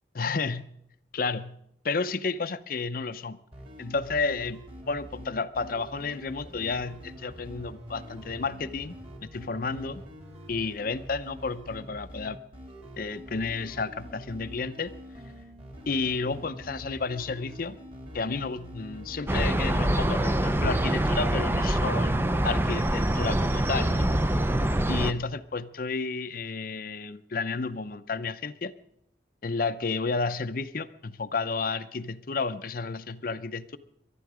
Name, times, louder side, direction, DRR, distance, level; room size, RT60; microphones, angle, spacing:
voice 1, 0.1-0.7 1.1-1.6 1.8-3.4 3.8-9.0 9.2-10.0 10.5-12.4 13.0-14.9 15.9-17.8 18.1-24.1 24.9-28.7 29.4-33.8, left 4 dB, 50° left, 13 dB, 0.6 m, -31 dB
sound 1, 3.5-22.1, equal, 30° right, 3.0 m, -45 dB
sound 2, 19.3-25.1, right 1 dB, 10° right, 0.5 m, -25 dB
22.5 x 11.5 x 4.9 m, 0.75 s
head